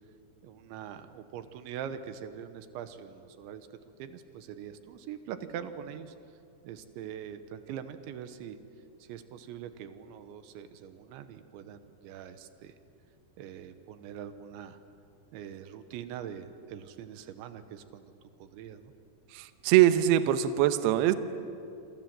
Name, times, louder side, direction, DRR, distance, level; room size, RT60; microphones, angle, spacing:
voice 1, 0.4-3.7 4.0-6.1 6.6-8.6 9.1-12.7 13.4-14.8 15.3-18.1 18.4-18.9, right 9 dB, 90° right, 10 dB, 3.5 m, -43 dB
voice 2, 19.6-21.2, right 12 dB, 75° right, 10 dB, 2.7 m, -22 dB
28.0 x 26.5 x 7.7 m, 2.6 s
omnidirectional pair, 5.2 m